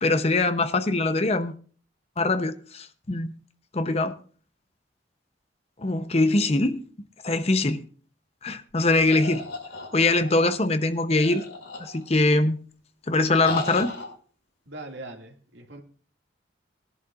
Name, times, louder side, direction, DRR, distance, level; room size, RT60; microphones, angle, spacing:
voice 1, 0.0-1.5 2.2-3.3 3.7-4.1 5.8-6.8 7.2-7.8 8.4-9.4 9.9-11.4 11.8-12.6 13.1-13.9, left 2 dB, 35° left, 0.7 m, -22 dB
sound 1, 9.1-10.4 11.1-12.2 13.3-14.1, left 2 dB, 90° left, 5.7 m, -35 dB
voice 2, 14.7-15.8, right 2 dB, 75° right, 2.1 m, -41 dB
20.0 x 11.0 x 2.4 m
head